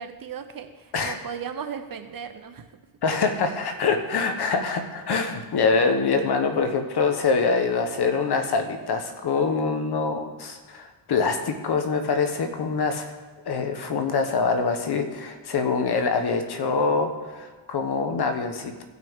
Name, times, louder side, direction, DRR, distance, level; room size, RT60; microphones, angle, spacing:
voice 1, 0.0-2.7, right 7 dB, 45° right, 8 dB, 0.9 m, -36 dB
voice 2, 3.0-13.1 13.4-18.8, left 4 dB, 55° left, 6 dB, 1.2 m, -24 dB
16.5 x 6.1 x 3.6 m, 1.3 s
cardioid pair, 95°, 47 cm